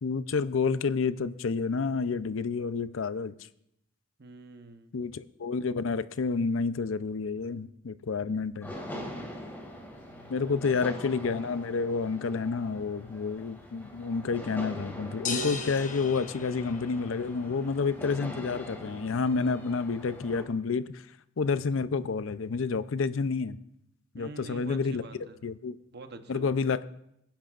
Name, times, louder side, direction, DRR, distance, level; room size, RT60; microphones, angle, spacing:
voice 1, 0.0-3.3 4.9-8.7 10.3-21.1 21.4-23.6 24.1-25.0 25.4-25.8 26.3-26.9, left 4 dB, 75° left, 14 dB, 0.5 m, -29 dB
voice 2, 4.2-4.9 10.0-10.8 24.1-25.4 25.9-26.7, right 3 dB, 55° right, 7 dB, 0.9 m, -46 dB
sound 1, 8.6-20.4, equal, 10° left, 2.3 m, -43 dB
sound 2, 15.3-17.3, left 3 dB, 40° left, 1.0 m, -36 dB
24.0 x 10.5 x 2.5 m, 0.77 s
head